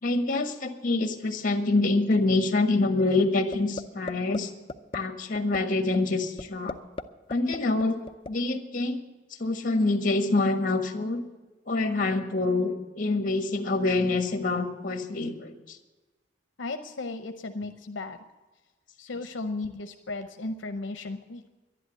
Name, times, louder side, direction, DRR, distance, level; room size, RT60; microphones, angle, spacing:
voice 1, 0.0-4.5 4.9-6.7 7.3-8.0 8.3-9.0 9.4-11.2 11.7-15.8, left 2 dB, 50° left, 6 dB, 1.5 m, -26 dB
sound 1, 3.5-4.4 4.7-5.0 5.4-5.6 5.9-6.0 6.4-7.0 7.3-8.3, left 3 dB, 30° left, 0.5 m, -34 dB
voice 2, 16.6-18.2 19.0-21.5, left 3 dB, 80° left, 7 dB, 0.7 m, -35 dB
11.5 x 11.0 x 8.1 m, 1.2 s
head